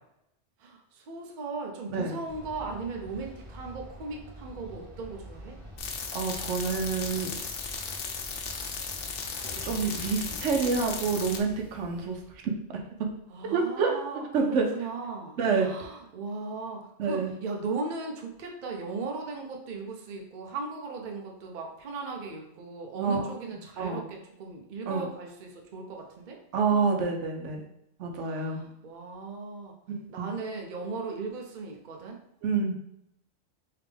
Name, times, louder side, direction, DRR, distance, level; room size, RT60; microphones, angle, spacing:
voice 1, 0.6-5.6 10.2-10.4 13.3-26.4 28.2-29.7 30.1-32.2, right 4 dB, 50° right, 1 dB, 0.6 m, -37 dB
voice 2, 1.9-2.2 6.1-7.3 9.6-12.2 12.7-12.8 13.4-14.0 14.3-14.7 15.4-15.7 17.0-17.4 23.0-23.3 23.8-24.0 24.9-25.1 26.5-27.6 28.0-28.6 29.9-30.3 32.4-32.7, right 5 dB, 80° right, 2 dB, 0.9 m, -28 dB
sound 1, 2.3-12.5, equal, 20° right, 0.9 m, -46 dB
sound 2, 5.8-11.4, left 5 dB, 60° left, 0.7 m, -36 dB
3.4 x 2.8 x 3.4 m, 0.79 s
omnidirectional pair, 1.2 m